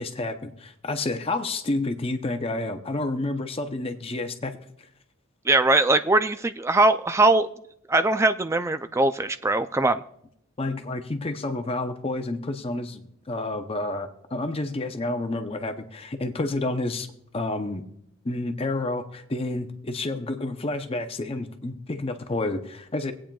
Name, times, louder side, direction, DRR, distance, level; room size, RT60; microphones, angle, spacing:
voice 1, 0.0-4.5 10.6-17.1 17.3-17.8 18.2-23.1, left 2 dB, 25° left, 7 dB, 0.6 m, -29 dB
voice 2, 5.5-7.5 7.9-10.0, right 2 dB, 15° right, 11 dB, 0.3 m, -21 dB
23.5 x 8.7 x 2.3 m, 0.73 s
head